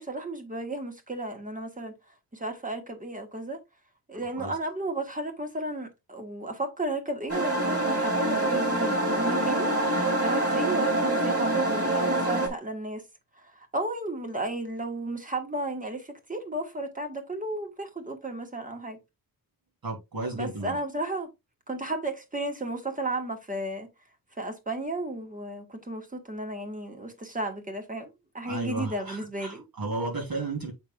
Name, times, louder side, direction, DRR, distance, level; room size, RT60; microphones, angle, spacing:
voice 1, 0.0-2.0 2.3-3.6 4.1-13.0 13.4-19.0 20.3-21.3 21.7-23.9 24.4-28.1 28.3-29.6, right 2 dB, 20° right, 1.4 m, -33 dB
sound 1, 7.3-12.5, right 1 dB, 40° right, 2.8 m, -25 dB
voice 2, 19.8-20.8 28.5-30.8, right 2 dB, 75° right, 3.6 m, -33 dB
7.4 x 5.8 x 2.4 m
wide cardioid pair, 170°, 35 cm